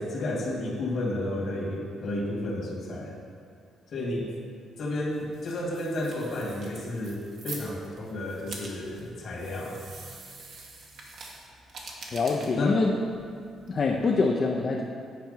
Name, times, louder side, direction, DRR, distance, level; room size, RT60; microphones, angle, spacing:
voice 1, 0.0-3.2 3.9-4.3 4.8-9.8 12.5-12.8, left 1 dB, 60° left, -2 dB, 2.1 m, -31 dB
sound 1, 5.0-14.2, right 3 dB, 70° right, 1.5 m, -46 dB
voice 2, 12.1-12.9 13.7-14.8, left 4 dB, 45° left, -1 dB, 0.7 m, -25 dB
9.6 x 4.5 x 5.7 m, 2.2 s
cardioid pair, 90°, 0 cm